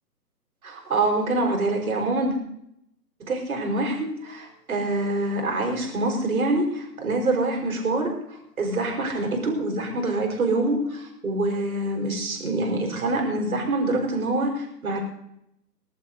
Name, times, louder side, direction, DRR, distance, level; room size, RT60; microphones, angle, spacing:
voice 1, 0.6-2.4 3.2-15.0, right 2 dB, 55° right, 2 dB, 5.2 m, -25 dB
21.5 x 11.5 x 3.9 m, 0.77 s
figure-of-eight pair, 145°, 49 cm